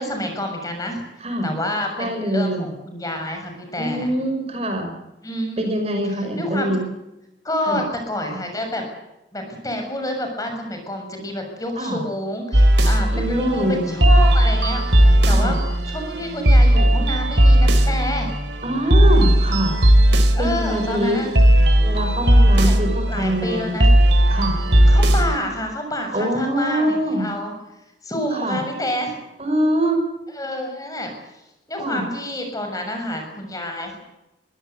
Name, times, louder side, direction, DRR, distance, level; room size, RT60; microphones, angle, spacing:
voice 1, 0.0-1.0 1.4-4.1 5.2-5.7 6.4-6.8 7.4-8.8 9.3-15.6 15.9-18.3 20.3-21.3 22.5-22.8 23.1-23.9 24.9-27.5 28.0-29.2 30.3-31.1 31.7-34.0, left 1 dB, 20° left, 4 dB, 6.8 m, -28 dB
voice 2, 2.0-2.7 3.8-4.9 5.6-6.8 7.7-7.8 11.8-12.0 13.1-13.9 15.2-15.5 18.6-19.7 20.4-21.2 21.8-23.7 24.3-24.6 26.1-27.2 28.3-28.6 29.4-30.0 31.8-32.0, right 1 dB, 35° right, 5 dB, 5.8 m, -23 dB
sound 1, 12.5-25.3, right 1 dB, 85° right, 3.6 m, -16 dB
23.5 x 17.5 x 8.2 m, 0.92 s
head